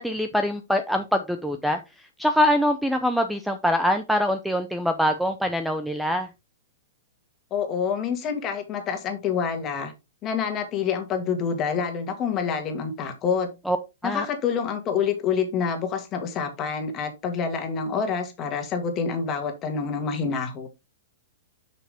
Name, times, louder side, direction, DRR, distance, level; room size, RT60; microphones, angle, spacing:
voice 1, 0.0-1.8 2.2-6.3 13.7-13.8 14.0-14.3, equal, ahead, 8 dB, 0.6 m, -24 dB
voice 2, 7.5-9.9 10.2-13.5 14.0-20.7, left 6 dB, 25° left, 5 dB, 2.0 m, -27 dB
6.9 x 6.1 x 3.6 m, 0.25 s
hypercardioid pair, 150°, 0 cm